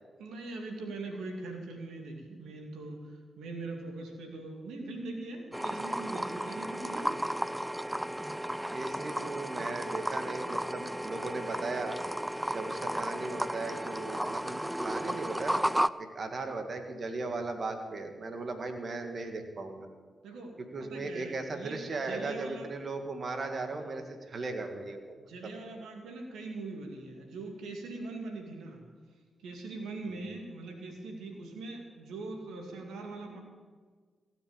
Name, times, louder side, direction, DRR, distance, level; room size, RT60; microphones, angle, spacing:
voice 1, 0.2-7.3 14.6-14.7 20.2-22.7 23.7-23.9 25.2-28.8 29.4-33.4, right 2 dB, 85° right, 2 dB, 2.2 m, -41 dB
sound 1, 5.5-15.9, right 1 dB, 10° right, 0.5 m, -34 dB
voice 2, 8.7-12.0 12.5-15.7 16.0-19.9 20.7-25.2 25.4-25.5 30.1-30.2, right 3 dB, 55° right, 5 dB, 1.9 m, -37 dB
16.0 x 6.9 x 8.9 m, 1.5 s
supercardioid pair, 40°, 0 cm